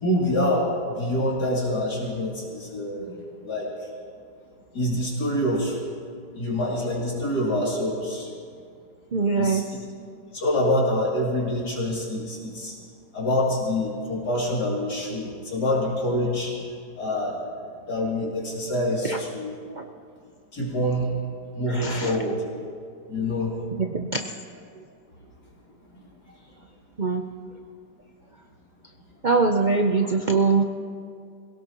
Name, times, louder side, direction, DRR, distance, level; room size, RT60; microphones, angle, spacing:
voice 1, 0.0-3.1 3.5-3.7 4.7-5.8 6.3-8.3 9.3-9.6 10.3-12.7 13.1-16.5 17.0-17.4 17.9-19.5 20.5-21.1 21.6-22.4 23.1-23.5, left 1 dB, 70° left, -5 dB, 3.4 m, -26 dB
voice 2, 9.1-9.7 19.1-19.2 19.8-19.9 21.7-22.1 23.9-24.1 27.0-27.2 29.2-30.6, right 4 dB, 60° right, 3 dB, 0.4 m, -22 dB
25.0 x 17.0 x 3.0 m, 2.3 s
omnidirectional pair, 1.8 m